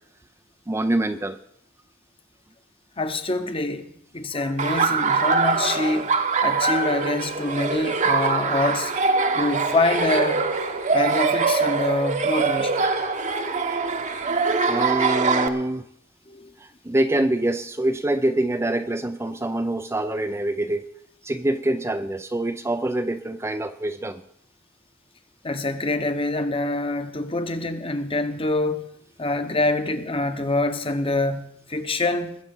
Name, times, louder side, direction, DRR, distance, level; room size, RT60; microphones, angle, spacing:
voice 1, 0.7-1.4 4.3-4.5 14.6-15.9 16.6-20.9 21.2-24.2, right 1 dB, 15° right, 0.5 m, -25 dB
voice 2, 3.0-6.1 6.4-8.9 9.3-10.4 10.9-12.7 16.3-16.5 25.4-28.9 29.2-31.4 31.7-32.4, left 2 dB, 25° left, 1.0 m, -25 dB
Laughter, 4.6-15.5, right 4 dB, 35° right, 1.0 m, -23 dB
20.5 x 7.9 x 5.5 m
head